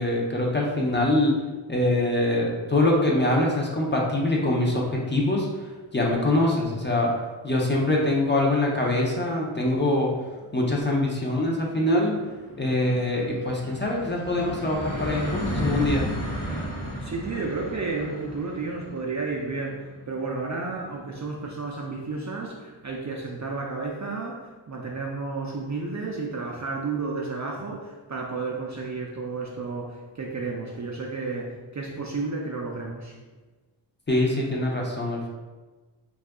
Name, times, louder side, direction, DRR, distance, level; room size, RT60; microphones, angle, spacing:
voice 1, 0.0-1.3 1.7-5.5 5.9-7.1 7.4-10.1 10.5-12.2 12.6-16.1 34.1-35.3, left 1 dB, 25° left, -2 dB, 0.5 m, -24 dB
sound 1, 11.6-22.0, equal, 75° left, 0.9 m, -34 dB
voice 2, 17.0-33.2, right 3 dB, 40° right, -1 dB, 0.4 m, -32 dB
2.7 x 2.4 x 3.4 m, 1.3 s
wide cardioid pair, 75°, 49 cm